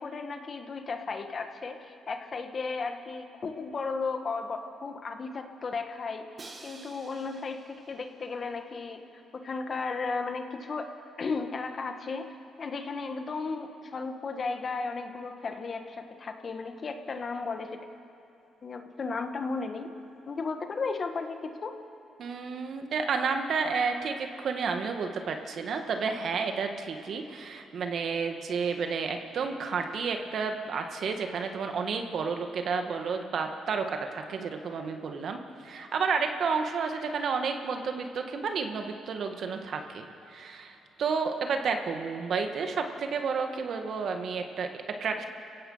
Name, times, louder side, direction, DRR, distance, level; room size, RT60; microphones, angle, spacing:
voice 1, 0.0-6.3 6.6-9.0 9.3-10.9 11.2-17.7 18.6-19.9 20.3-21.7, left 4 dB, 45° left, 6 dB, 1.7 m, -35 dB
Crash cymbal, 6.4-8.4, right 3 dB, 35° right, 2.4 m, -50 dB
voice 2, 22.2-45.2, right 5 dB, 60° right, 5 dB, 1.8 m, -31 dB
30.0 x 16.5 x 5.7 m, 2.7 s
cardioid pair, 90°, 0 cm